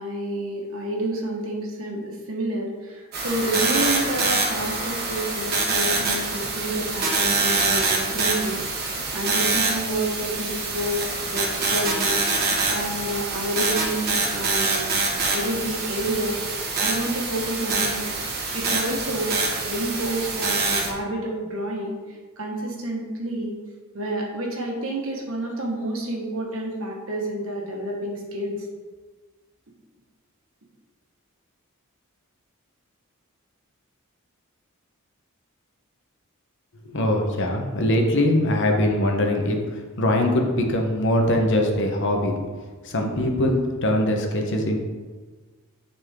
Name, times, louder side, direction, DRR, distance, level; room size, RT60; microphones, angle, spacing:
voice 1, 0.0-11.0 11.2-12.2 12.7-14.9 15.3-18.0 18.3-19.4 19.6-23.5 23.9-28.6, right 1 dB, 65° right, -1 dB, 1.5 m, -29 dB
sound 1, 3.1-20.9, right 3 dB, 45° right, 1.4 m, -25 dB
voice 2, 36.8-39.6 40.0-42.3 42.8-44.8, left 1 dB, 55° left, 2 dB, 1.0 m, -22 dB
9.6 x 4.2 x 3.7 m, 1.4 s
head